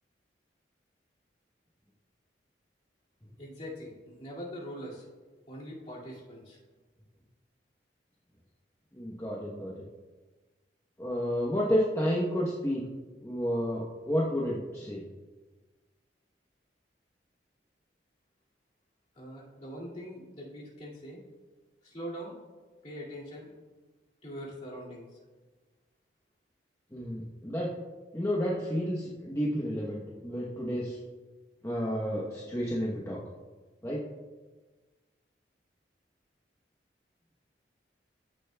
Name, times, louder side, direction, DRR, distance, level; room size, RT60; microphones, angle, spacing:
voice 1, 3.4-5.1 5.5-6.6 19.1-21.2 21.8-22.3 22.8-23.5 24.2-25.1, equal, 35° left, -5 dB, 2.2 m, -42 dB
voice 2, 8.9-9.7 11.0-12.8 13.2-15.0 26.9-27.7 28.1-31.0 31.6-33.2 33.8-34.0, equal, 15° left, -4 dB, 0.9 m, -31 dB
14.5 x 6.8 x 2.2 m, 1.3 s
head